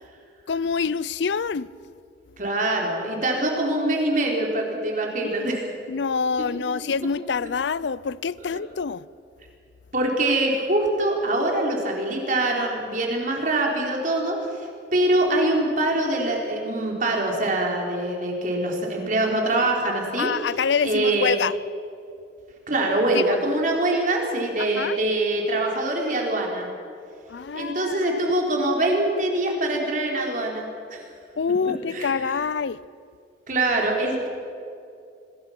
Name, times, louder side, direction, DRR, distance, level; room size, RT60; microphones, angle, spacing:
voice 1, 0.5-1.7 5.2-5.5 5.9-9.0 20.2-21.5 23.1-23.4 24.6-25.0 27.3-28.3 31.4-32.8, left 5 dB, 75° left, 0.5 m, -26 dB
voice 2, 2.4-5.6 9.9-20.3 20.8-21.4 22.7-26.7 27.5-31.0 31.9-32.4 33.5-34.3, right 1 dB, 45° right, 4.2 m, -24 dB
25.5 x 21.0 x 6.0 m
head